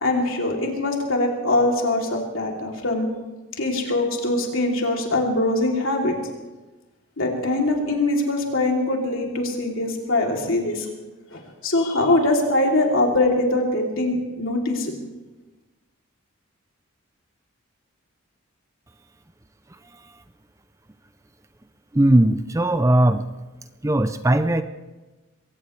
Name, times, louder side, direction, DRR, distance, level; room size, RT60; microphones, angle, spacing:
voice 1, 0.0-3.1 3.6-6.1 7.2-10.9 11.3-14.9, left 2 dB, 65° left, 0 dB, 3.1 m, -22 dB
voice 2, 21.9-23.2 23.8-24.6, right 1 dB, 15° right, 10 dB, 0.5 m, -18 dB
22.5 x 18.0 x 3.3 m, 1.2 s
head